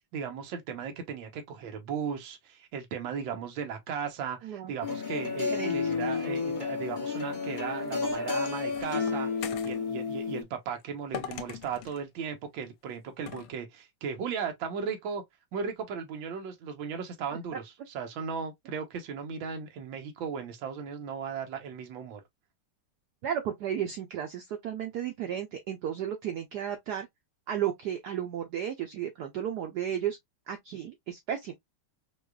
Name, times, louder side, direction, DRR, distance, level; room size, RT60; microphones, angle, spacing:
voice 1, 0.1-9.3 9.6-15.2 15.5-22.2, right 6 dB, 70° right, 1.6 m, -36 dB
voice 2, 4.4-4.7 5.5-5.8 23.2-27.1 27.5-30.2 30.5-31.5, right 9 dB, 85° right, 0.8 m, -33 dB
sound 1, 4.8-10.4, left 5 dB, 45° left, 0.6 m, -31 dB
sound 2, 7.9-9.8 11.1-12.0 13.3-13.5, left 10 dB, 85° left, 1.5 m, -41 dB
4.8 x 2.3 x 2.3 m
omnidirectional pair, 2.4 m